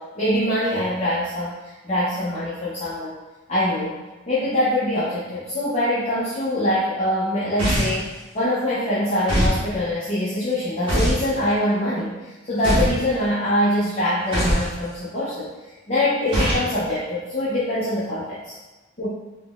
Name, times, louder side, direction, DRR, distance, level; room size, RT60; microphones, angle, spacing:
voice 1, 0.0-3.1 3.5-4.0 4.3-8.1 8.3-12.1 12.4-15.5 15.9-18.6 19.0-19.1, left 1 dB, 30° left, -9 dB, 0.5 m, -23 dB
sound 1, 7.6-8.1 9.3-9.6 10.9-11.2 12.6-13.0 14.3-14.7 16.3-16.7, equal, 25° right, 0.9 m, -21 dB
3.5 x 2.1 x 2.3 m, 1.1 s
head